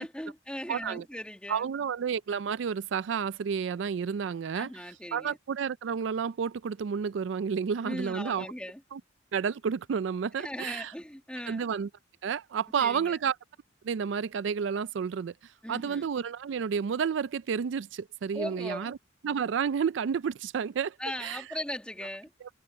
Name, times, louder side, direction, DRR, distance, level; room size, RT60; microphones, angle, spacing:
voice 1, 0.0-1.7 4.5-5.4 7.8-8.8 10.4-11.6 12.8-13.2 15.6-16.1 18.3-18.9 21.0-22.3, left 1 dB, 5° left, 2.0 m, -38 dB
voice 2, 0.7-1.0 1.5-4.7 5.1-8.5 8.9-9.0 9.3-10.9 11.5-11.9 12.2-13.3 13.8-19.0 19.2-21.0 21.2-21.4, right 6 dB, 70° right, 0.4 m, -31 dB
head